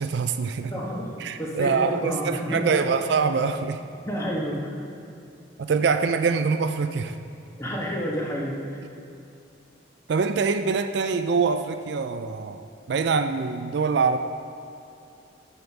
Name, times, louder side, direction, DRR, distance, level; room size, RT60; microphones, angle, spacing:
voice 1, 0.0-0.7 1.2-3.8 5.6-7.1 10.1-14.2, right 5 dB, 60° right, 9 dB, 0.4 m, -24 dB
voice 2, 0.7-2.8 4.0-4.8 7.6-8.8, equal, 15° left, -3 dB, 1.3 m, -30 dB
7.8 x 7.0 x 5.8 m, 2.6 s
head